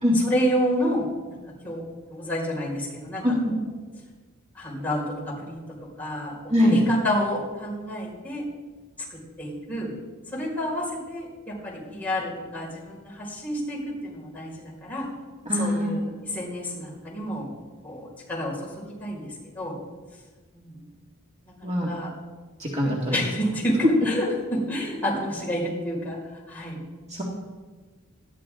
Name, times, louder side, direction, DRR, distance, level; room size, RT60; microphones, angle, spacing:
voice 1, 0.1-1.8 2.1-3.6 4.5-5.6 6.0-8.4 9.1-9.9 10.3-15.1 15.5-17.5 17.8-19.7 20.5-20.8 21.4-22.1 22.8-26.8, equal, 10° left, -6 dB, 5.5 m, -30 dB
voice 2, 15.5-15.9 21.6-21.9 22.6-23.2 27.1-27.2, left 1 dB, 30° right, -4 dB, 2.2 m, -23 dB
20.0 x 13.5 x 3.8 m, 1.3 s
head